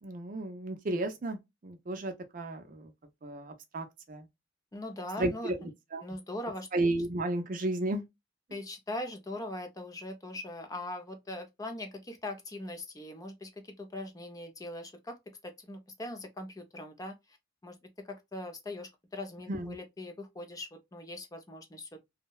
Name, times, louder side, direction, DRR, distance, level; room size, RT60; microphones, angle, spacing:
voice 1, 0.0-2.9 3.2-4.3 5.2-6.0 6.7-8.0 19.5-19.8, right 2 dB, 45° right, 0.5 m, -33 dB
voice 2, 4.7-5.5 6.0-6.7 8.5-15.2 15.4-17.2 17.6-21.9, left 1 dB, 20° left, 0.5 m, -41 dB
2.7 x 2.1 x 2.2 m
head